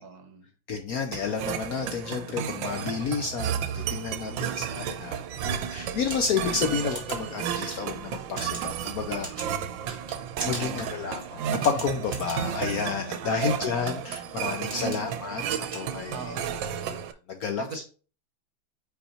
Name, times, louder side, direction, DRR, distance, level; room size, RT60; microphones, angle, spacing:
voice 1, 0.0-0.5 4.2-4.7 6.6-6.8 10.4-11.2 13.2-14.1 14.8-15.2 16.1-16.7 17.6-17.9, right 3 dB, 60° right, 1.3 m, -41 dB
voice 2, 0.7-5.2 5.7-9.6 10.5-16.4 16.9-17.0 17.3-17.8, left 6 dB, 65° left, 0.9 m, -31 dB
sound 1, 1.1-17.1, right 8 dB, 80° right, 1.3 m, -33 dB
sound 2, 6.0-16.5, right 2 dB, 30° right, 2.1 m, -42 dB
5.5 x 4.5 x 4.3 m
omnidirectional pair, 2.1 m